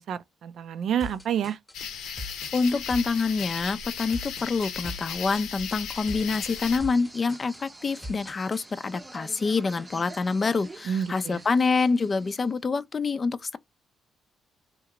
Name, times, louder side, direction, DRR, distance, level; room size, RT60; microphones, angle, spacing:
voice 1, 0.0-1.6 10.9-11.4, right 9 dB, 70° right, 0.5 m, -29 dB
sound 1, 1.0-8.6, left 1 dB, 15° left, 0.9 m, -41 dB
sound 2, 1.7-6.8, left 7 dB, 85° left, 0.7 m, -36 dB
voice 2, 2.5-13.6, left 4 dB, 35° left, 0.4 m, -26 dB
sound 3, 6.4-12.6, right 2 dB, 15° right, 0.7 m, -47 dB
2.9 x 2.4 x 2.9 m
cardioid pair, 90°, 0 cm